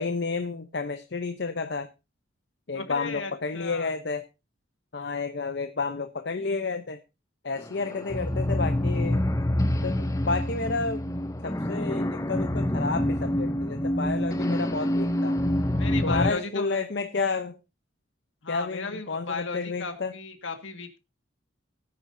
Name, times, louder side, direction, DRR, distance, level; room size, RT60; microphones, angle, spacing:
voice 1, 0.0-1.9 2.7-4.2 4.9-7.0 7.4-9.2 9.8-11.0 11.4-15.4 16.0-17.6 18.5-20.1, left 4 dB, 55° left, 8 dB, 0.7 m, -31 dB
voice 2, 2.7-3.9 15.8-16.9 18.4-21.0, left 4 dB, 70° left, 7 dB, 1.8 m, -35 dB
sound 1, 7.6-16.3, left 1 dB, 15° left, 0.6 m, -27 dB
18.0 x 9.6 x 2.6 m, 0.26 s
head